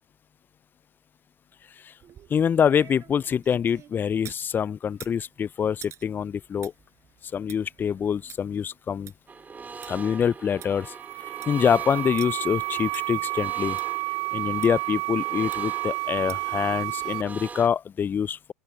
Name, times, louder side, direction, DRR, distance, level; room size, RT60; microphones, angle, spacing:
sound 1, 2.0-4.5 4.9-9.9 10.3-10.4 10.6-10.7 11.2-11.6 12.2-12.3 12.9-13.0 13.8-13.9 14.6-14.7 15.5-15.8 16.3-16.6 17.0-17.1, right 10 dB, 35° right, 7.1 m, -48 dB
voice 1, 2.3-6.7 7.3-9.1 9.9-10.9 11.2-13.8 14.3-18.5, left 7 dB, 25° left, 0.5 m, -25 dB
sound 2, 9.3-17.7, right 5 dB, 20° right, 2.8 m, -42 dB
sound 3, 10.7-17.2, right 31 dB, 55° right, 1.2 m, -30 dB
open air
figure-of-eight pair, 85°, 8 cm